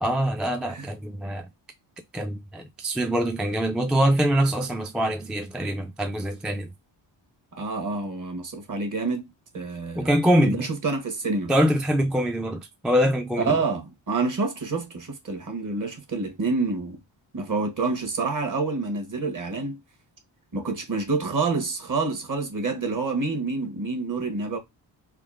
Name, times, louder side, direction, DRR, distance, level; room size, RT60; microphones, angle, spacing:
voice 1, 0.0-1.5 2.1-6.7 10.0-10.7 11.5-13.6, equal, ahead, 0.3 m, -24 dB
voice 2, 7.5-10.2 10.4-11.5 13.4-17.0 17.3-19.8 20.5-24.6, right 3 dB, 40° right, 1.1 m, -28 dB
3.6 x 2.1 x 2.4 m
cardioid pair, 90°, 46 cm